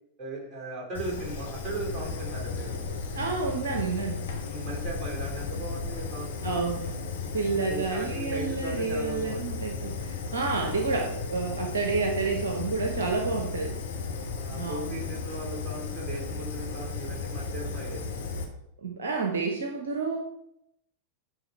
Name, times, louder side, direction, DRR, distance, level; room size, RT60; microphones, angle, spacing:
voice 1, 0.2-2.8 4.4-6.6 7.6-9.5 14.3-18.0, right 2 dB, 25° right, -3 dB, 2.7 m, -38 dB
Fire, 0.9-18.4, left 4 dB, 65° left, 1.1 m, -35 dB
voice 2, 3.1-4.2 6.4-6.9 7.3-13.8 14.6-15.0 18.8-20.2, right 4 dB, 65° right, 3 dB, 0.8 m, -29 dB
9.5 x 3.6 x 4.3 m, 0.78 s
figure-of-eight pair, 90°, 0 cm